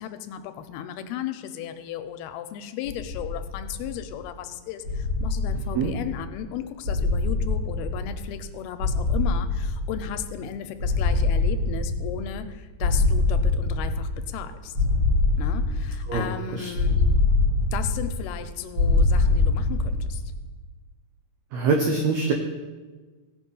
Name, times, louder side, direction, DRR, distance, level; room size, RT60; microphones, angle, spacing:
voice 1, 0.0-14.7 15.4-17.0 17.7-20.2, left 10 dB, 85° left, 9 dB, 2.5 m, -35 dB
sound 1, 2.8-4.2 4.8-6.4 6.8-8.5 8.8-10.4 10.8-12.5 12.8-14.4 14.7-16.3 16.7-18.4 18.7-20.4, left 3 dB, 35° right, 3.7 m, -24 dB
voice 2, 16.1-16.7 21.5-22.3, right 4 dB, 85° right, 2 dB, 1.6 m, -24 dB
16.5 x 5.5 x 5.4 m, 1.3 s
omnidirectional pair, 4.5 m